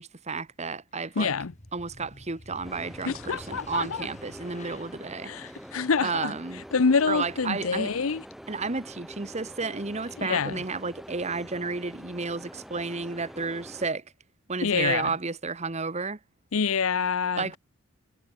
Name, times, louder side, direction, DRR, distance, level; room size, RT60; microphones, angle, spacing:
voice 1, 0.0-1.3 1.7-5.3 6.0-6.6 7.1-7.9 8.5-14.0 14.5-16.2 17.4-17.6, right 4 dB, 30° right, 1.3 m, -32 dB
sound 1, 1.0-6.2, left 1 dB, 35° left, 3.3 m, -49 dB
voice 2, 1.2-1.5 3.0-4.1 5.2-6.4 6.7-8.2 10.2-10.6 14.6-15.1 16.5-17.6, left 5 dB, 75° left, 0.7 m, -26 dB
Kiyevsky railway station passengers get off the train, 2.6-13.9, equal, ahead, 3.2 m, -45 dB
head